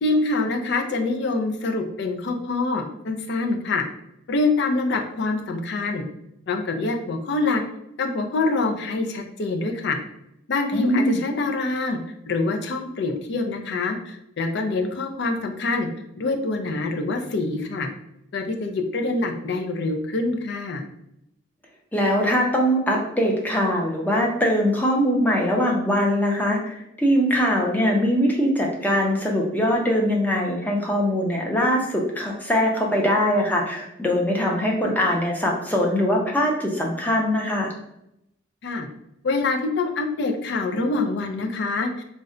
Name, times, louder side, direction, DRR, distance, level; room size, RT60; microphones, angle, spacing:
voice 1, 0.0-3.8 4.3-6.0 6.5-7.6 8.0-10.0 10.5-12.0 12.3-15.9 16.2-17.9 18.3-20.8 38.6-38.9 39.2-41.9, left 3 dB, 60° left, 4 dB, 0.4 m, -25 dB
voice 2, 10.7-11.2 21.9-37.7, equal, 10° left, -1 dB, 0.5 m, -22 dB
2.5 x 2.1 x 3.7 m, 0.80 s
head